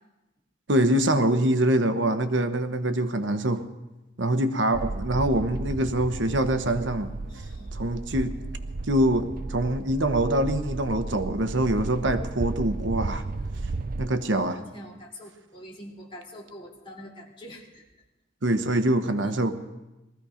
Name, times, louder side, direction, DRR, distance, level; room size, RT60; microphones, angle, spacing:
voice 1, 0.7-3.6 4.2-7.1 7.7-8.3 8.9-13.2 14.0-14.6 18.4-19.6, right 1 dB, 80° right, 9 dB, 1.1 m, -24 dB
sound 1, 4.7-14.1, right 2 dB, 50° right, 0.6 m, -34 dB
voice 2, 7.3-7.7 14.3-17.8 19.2-19.3, equal, 25° left, -3 dB, 2.8 m, -45 dB
19.5 x 14.5 x 5.1 m, 1.0 s
head